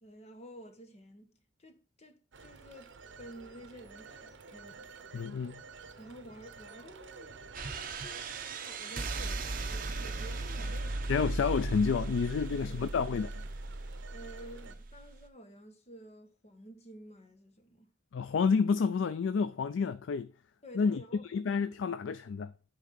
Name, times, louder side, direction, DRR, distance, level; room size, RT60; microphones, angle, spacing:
voice 1, 0.0-4.9 6.0-11.3 12.5-13.0 14.1-17.9 20.6-21.3, right 1 dB, 35° left, 1.4 m, -52 dB
Telephone, 2.3-14.8, right 4 dB, 80° right, 0.8 m, -51 dB
voice 2, 5.1-5.6 11.1-13.3 18.1-20.3 20.8-21.0 21.3-22.5, left 5 dB, 90° left, 0.4 m, -29 dB
sound 1, 7.5-15.3, right 3 dB, 50° right, 0.9 m, -37 dB
9.2 x 3.7 x 5.4 m
head